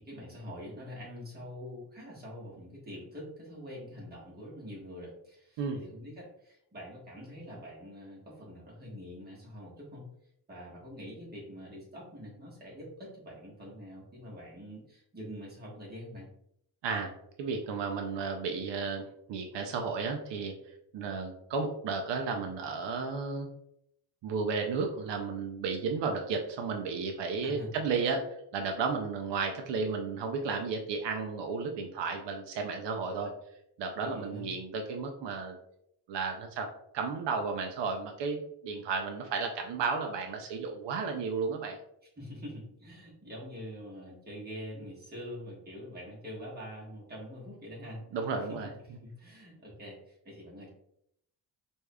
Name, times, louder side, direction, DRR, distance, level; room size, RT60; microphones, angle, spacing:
voice 1, 0.0-10.1 10.5-16.3 27.4-27.8 34.0-34.5 42.2-48.0 48.8-50.7, equal, 20° right, -5 dB, 1.4 m, -45 dB
voice 2, 17.4-20.5 20.9-23.5 24.2-28.2 28.5-33.3 33.8-35.6 36.1-36.7 36.9-41.8 48.1-48.7, right 4 dB, 80° right, 3 dB, 0.6 m, -33 dB
4.7 x 2.6 x 2.2 m, 0.75 s
wide cardioid pair, 135°, 42 cm